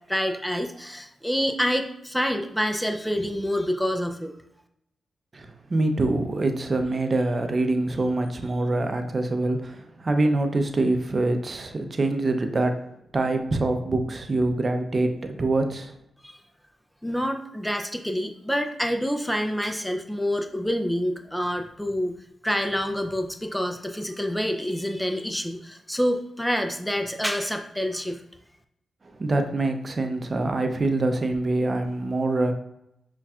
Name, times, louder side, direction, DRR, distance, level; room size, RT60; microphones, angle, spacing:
voice 1, 0.1-4.3 16.2-16.4 17.0-22.2 22.4-28.2, equal, 5° left, 4 dB, 0.4 m, -27 dB
voice 2, 5.3-12.7 13.1-15.9 29.2-32.5, right 2 dB, 45° right, 6 dB, 0.6 m, -25 dB
5.5 x 2.3 x 2.4 m, 0.78 s
supercardioid pair, 50°, 0 cm